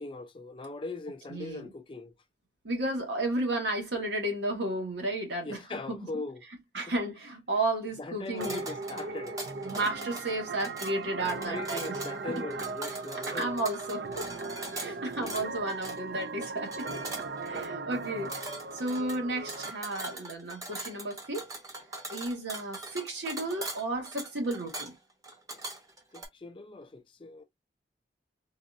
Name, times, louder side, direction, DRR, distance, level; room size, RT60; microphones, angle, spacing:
voice 1, 0.0-2.1 5.4-6.4 8.0-9.4 11.5-13.5 14.8-15.3 17.5-17.6 26.1-27.4, left 3 dB, 30° left, 0.4 m, -40 dB
voice 2, 1.3-1.7 2.6-6.0 6.7-8.6 9.6-11.9 12.3-12.4 13.3-14.3 14.7-17.0 17.4-18.5 18.7-21.5 22.1-24.9, right 2 dB, 85° right, 1.5 m, -33 dB
sound 1, 8.3-26.3, right 2 dB, 20° right, 0.8 m, -42 dB
sound 2, 8.4-19.7, right 3 dB, 65° right, 0.4 m, -38 dB
4.0 x 2.6 x 2.4 m
head